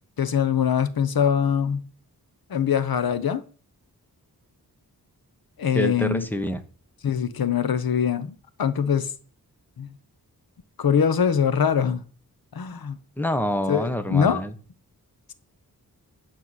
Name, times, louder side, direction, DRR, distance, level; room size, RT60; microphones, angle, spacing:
voice 1, 0.2-1.9 2.5-3.4 5.6-6.2 7.0-8.3 8.6-9.1 9.8-9.9 10.8-12.0 12.5-13.0 13.7-14.4, left 7 dB, 75° left, 1.1 m, -23 dB
voice 2, 5.7-6.6 13.2-14.5, equal, 5° left, 1.3 m, -26 dB
12.5 x 4.6 x 8.1 m
wide cardioid pair, 110°, 37 cm